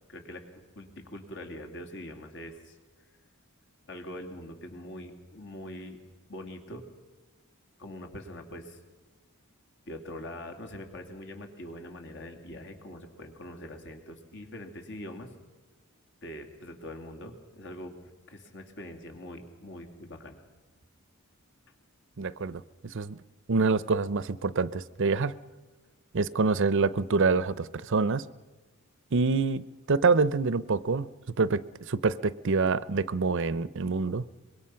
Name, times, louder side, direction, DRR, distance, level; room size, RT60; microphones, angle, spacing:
voice 1, 0.1-2.8 3.9-6.0 6.3-6.9 7.8-8.8 9.9-15.3 16.2-20.4, left 1 dB, 55° left, 5 dB, 2.8 m, -43 dB
voice 2, 22.2-22.6 22.9-23.2 23.5-25.3 26.1-28.2 29.1-29.6 29.9-31.1 31.4-34.2, right 4 dB, 60° right, 18 dB, 0.6 m, -26 dB
24.5 x 22.0 x 5.7 m, 1.2 s
head